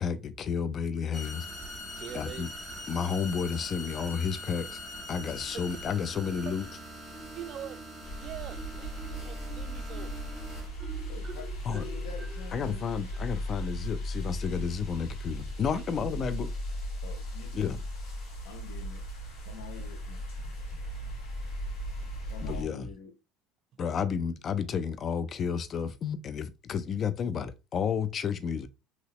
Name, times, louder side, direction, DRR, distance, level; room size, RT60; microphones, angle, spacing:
voice 1, 0.0-1.5 2.1-2.5 2.9-4.8 5.1-6.6 11.7-11.8 12.5-16.5 17.5-17.8 22.4-22.9 23.8-28.7, left 6 dB, 40° left, 0.4 m, -31 dB
sound 1, 1.1-10.7, left 1 dB, 5° right, 1.5 m, -43 dB
voice 2, 2.0-2.5 7.3-7.8 8.1-10.2 15.7-16.0 20.4-21.3 21.7-22.3 23.7-23.8 24.1-24.2 27.0-27.1, right 10 dB, 50° right, 0.3 m, -45 dB
Marimba xylophone, 7.1-8.0 8.5-14.0, right 2 dB, 30° right, 1.7 m, -48 dB
sound 2, 8.0-22.6, equal, 60° left, 2.0 m, -37 dB
voice 3, 11.1-12.9 17.0-17.8 18.4-19.1 19.5-20.2 22.2-23.1, left 6 dB, 90° left, 0.7 m, -46 dB
3.0 x 2.8 x 3.0 m
supercardioid pair, 100°, 0 cm